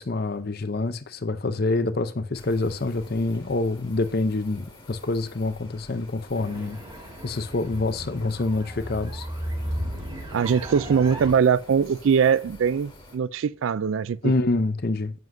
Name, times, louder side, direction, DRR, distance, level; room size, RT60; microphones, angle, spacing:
voice 1, 0.0-6.8 7.2-9.3 14.2-15.1, left 2 dB, 45° left, 0.6 m, -26 dB
sound 1, 2.3-13.2, left 1 dB, 25° left, 1.9 m, -48 dB
sound 2, 6.3-11.3, equal, 20° right, 1.8 m, -35 dB
voice 2, 10.3-14.2, right 6 dB, 65° right, 0.3 m, -22 dB
7.7 x 7.5 x 2.6 m
head